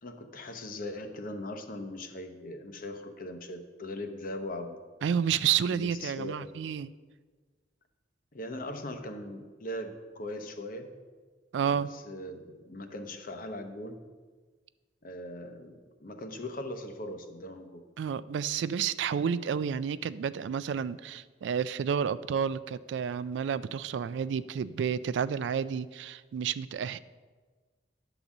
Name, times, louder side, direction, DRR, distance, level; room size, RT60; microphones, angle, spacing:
voice 1, 0.0-4.8 5.7-6.5 8.3-10.9 11.6-14.0 15.0-17.8, left 1 dB, 50° left, 6 dB, 0.8 m, -40 dB
voice 2, 5.0-6.9 11.5-11.9 18.0-27.0, right 7 dB, 75° right, 16 dB, 0.3 m, -30 dB
9.9 x 4.0 x 7.1 m, 1.4 s
head